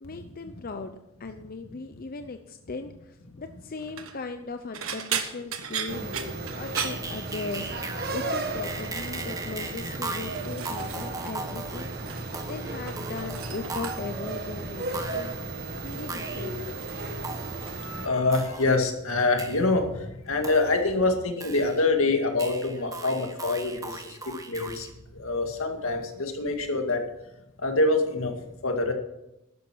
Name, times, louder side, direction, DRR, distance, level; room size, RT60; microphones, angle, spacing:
voice 1, 0.0-6.0 6.3-7.8 8.1-11.9 12.4-15.3 15.8-16.6, left 3 dB, 45° left, 8 dB, 0.6 m, -38 dB
sound 1, 3.8-4.2 4.7-7.8 8.0-8.4 8.7-9.3 9.9-11.4 11.6-12.5 12.7-14.3 15.2-15.4 15.9-17.9 18.2-18.7 19.1-19.3 20.6-20.7, right 8 dB, 85° right, 1.4 m, -37 dB
sound 2, 5.9-18.1, right 2 dB, 50° right, 1.5 m, -35 dB
sound 3, 6.8-8.3 8.6-14.2 14.9-15.5 16.1-16.5 17.2-17.7 18.3-18.8 19.4-19.8 20.4-21.0 21.4-22.1 22.4-24.9, right 3 dB, 15° right, 1.3 m, -38 dB
voice 2, 17.4-24.9 25.1-27.0 27.6-28.4 28.6-28.9, left 2 dB, 80° left, 4 dB, 2.1 m, -26 dB
12.5 x 10.0 x 6.2 m, 0.90 s
head